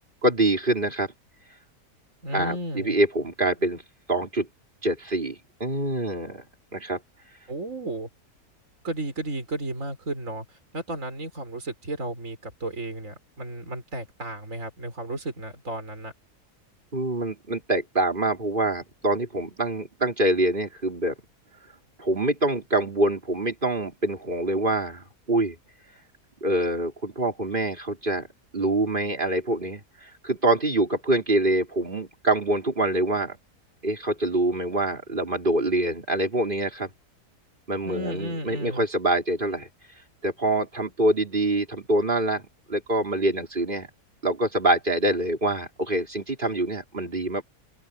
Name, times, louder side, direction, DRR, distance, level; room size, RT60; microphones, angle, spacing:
voice 1, 0.2-1.1 2.3-3.8 4.1-4.5 4.8-6.4 6.7-7.0 16.9-21.1 22.0-25.6 26.4-28.3 28.5-33.4 33.8-36.9 37.7-39.7 40.2-42.4 42.7-43.9 44.2-47.4, right 1 dB, 30° right, 4.5 m, -25 dB
voice 2, 2.2-3.0 7.5-8.1 8.8-16.1 37.8-38.8, right 1 dB, 55° right, 5.3 m, -33 dB
omnidirectional pair, 1.7 m